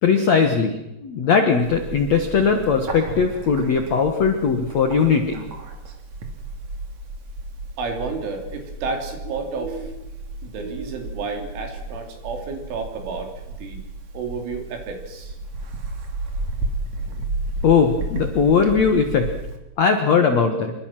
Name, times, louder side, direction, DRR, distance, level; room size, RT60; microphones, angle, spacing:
voice 1, 0.0-5.4 17.6-19.3 19.8-20.7, left 5 dB, 70° left, 6 dB, 1.6 m, -19 dB
Bird, 1.6-19.6, right 2 dB, 45° right, 3.2 m, -33 dB
voice 2, 7.8-9.9 10.4-13.8 14.1-15.4, right 4 dB, 80° right, 3 dB, 5.8 m, -31 dB
27.0 x 23.0 x 6.1 m, 0.93 s
omnidirectional pair, 5.5 m